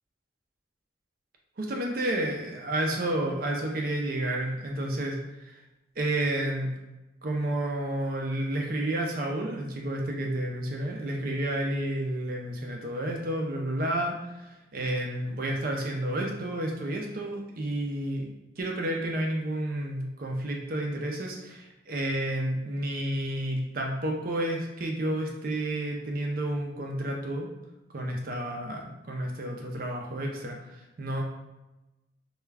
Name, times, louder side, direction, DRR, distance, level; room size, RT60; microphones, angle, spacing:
voice 1, 1.6-5.6 6.0-6.7 7.2-18.2 18.6-27.5 27.9-31.2, right 1 dB, 50° right, 0 dB, 0.5 m, -31 dB
2.3 x 2.2 x 3.2 m, 1.0 s
head